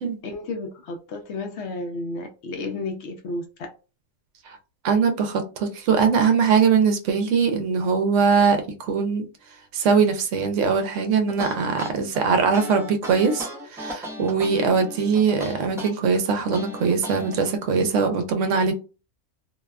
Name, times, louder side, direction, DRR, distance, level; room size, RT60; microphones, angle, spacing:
voice 1, 0.2-3.7, left 2 dB, 65° left, 0.8 m, -32 dB
voice 2, 4.8-9.2 9.7-13.5 13.7-18.7, right 5 dB, 70° right, 0.9 m, -21 dB
sound 1, 11.3-17.4, equal, 5° right, 0.4 m, -36 dB
2.6 x 2.1 x 2.3 m
omnidirectional pair, 1.4 m